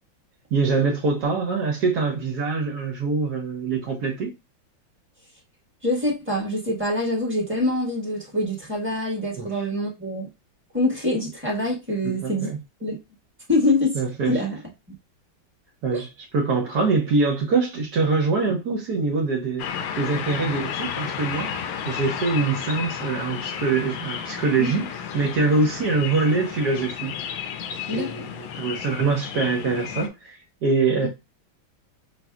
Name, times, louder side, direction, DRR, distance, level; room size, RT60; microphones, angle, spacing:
voice 1, 0.5-4.3 9.4-9.5 12.0-12.6 13.9-14.4 15.8-16.1 16.3-19.7 20.0-24.8 25.1-27.2 27.9-31.1, right 4 dB, 60° right, 1.2 m, -24 dB
voice 2, 5.8-10.3 10.7-12.5 12.8-13.0 13.5-14.0 14.3-14.6 15.9-16.0 24.6-24.8 27.9-28.1, left 1 dB, 5° right, 1.1 m, -25 dB
sound 1, 19.6-30.1, left 8 dB, 90° left, 1.4 m, -32 dB
5.7 x 2.6 x 2.3 m
omnidirectional pair, 2.2 m